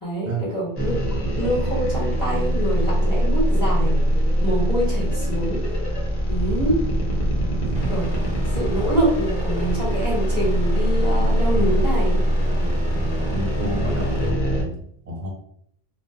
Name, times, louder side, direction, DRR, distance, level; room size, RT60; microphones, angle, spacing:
voice 1, 0.0-3.9 4.4-5.6 6.3-6.8 7.9-8.1 8.5-12.2, right 1 dB, 20° left, -8 dB, 1.4 m, -25 dB
sound 1, 0.8-14.6, equal, 40° left, 0.8 m, -22 dB
sound 2, 7.7-14.3, right 1 dB, 10° right, 0.7 m, -36 dB
voice 2, 12.9-15.3, right 1 dB, 45° right, -4 dB, 1.3 m, -30 dB
2.6 x 2.3 x 3.7 m, 0.67 s
omnidirectional pair, 1.1 m